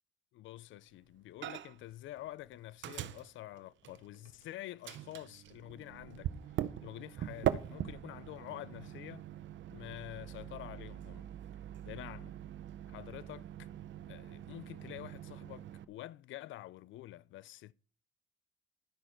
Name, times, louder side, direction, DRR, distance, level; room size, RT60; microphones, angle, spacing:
voice 1, 0.3-6.4 6.8-9.3 9.7-11.3 11.8-12.4 12.9-13.7 14.1-17.7, left 15 dB, 75° left, 0.4 m, -48 dB
Microwave oven, 1.4-1.9 2.2-4.4 4.8-15.8, right 11 dB, 70° right, 0.7 m, -42 dB
11.5 x 6.4 x 4.4 m
cardioid pair, 90°, 20 cm